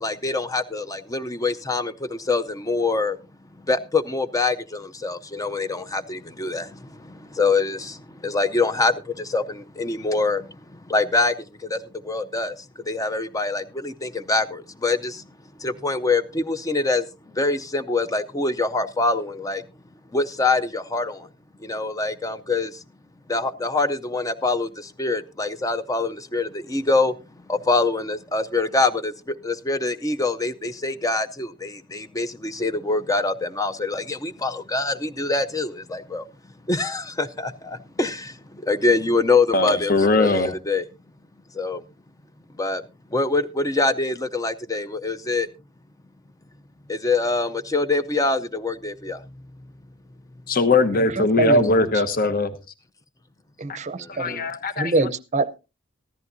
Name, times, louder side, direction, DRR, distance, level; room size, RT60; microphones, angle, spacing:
voice 1, 0.0-1.9 2.3-3.2 3.7-6.6 7.4-7.9 8.2-10.4 10.9-11.3 11.7-11.8 12.1-12.5 12.9-15.1 15.6-17.0 17.4-19.6 20.1-21.2 21.7-22.7 23.3-24.7 25.0-27.1 27.5-29.1 29.4-36.2 36.7-38.3 38.7-40.8 41.6-41.8 42.6-42.8 43.1-45.5 46.9-49.2 54.3-54.4, left 3 dB, 15° left, 0.6 m, -24 dB
voice 2, 39.5-40.5 50.5-52.5 53.7-53.8 54.2-54.9, left 2 dB, 50° left, 1.1 m, -20 dB
voice 3, 50.9-51.9 53.6-54.5 54.8-55.6, right 3 dB, 35° right, 0.7 m, -25 dB
14.5 x 13.5 x 2.6 m
head